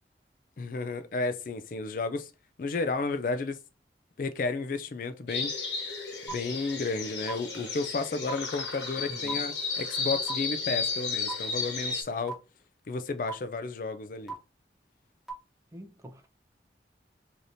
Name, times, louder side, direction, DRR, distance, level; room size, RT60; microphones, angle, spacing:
voice 1, 0.6-2.3 2.6-3.6 4.2-5.5 6.3-12.4 12.9-14.3, left 3 dB, 50° left, 0.4 m, -32 dB
sound 1, 5.3-12.0, left 4 dB, 85° left, 1.2 m, -33 dB
sound 2, 6.3-6.4 7.3-7.4 8.3-8.4 9.3-9.4 10.3-10.4 11.3-11.4 12.3-12.4 13.3-13.4 14.3-14.4 15.3-15.4, right 5 dB, ahead, 1.1 m, -35 dB
voice 2, 9.1-9.4 15.7-16.3, equal, 15° right, 0.6 m, -45 dB
4.8 x 2.8 x 2.6 m
head